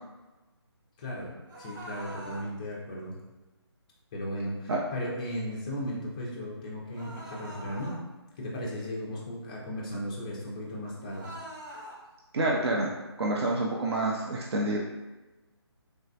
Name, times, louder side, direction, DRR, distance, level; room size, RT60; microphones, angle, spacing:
voice 1, 1.0-1.3 1.6-3.1 4.1-8.0 8.4-11.3, equal, 15° left, -4 dB, 0.3 m, -36 dB
sound 1, 1.5-2.5 6.9-8.0 11.1-12.0, right 1 dB, 45° right, 0.8 m, -43 dB
voice 2, 12.3-12.9 13.2-14.8, right 2 dB, 70° right, -2 dB, 0.4 m, -27 dB
3.2 x 2.1 x 2.6 m, 1.1 s
figure-of-eight pair, 150°, 14 cm